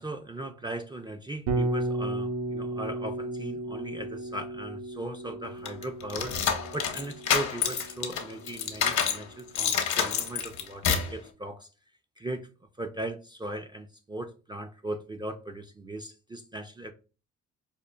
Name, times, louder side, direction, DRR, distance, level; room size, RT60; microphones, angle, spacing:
voice 1, 0.0-6.4 6.7-11.7 12.2-12.5 12.8-16.9, right 1 dB, 15° right, 0.3 m, -38 dB
Bass guitar, 1.5-9.5, right 2 dB, 70° right, 0.8 m, -35 dB
sound 1, 5.7-9.2 9.6-11.2, left 7 dB, 75° left, 0.8 m, -28 dB
5.0 x 2.4 x 2.2 m
cardioid pair, 90°, 30 cm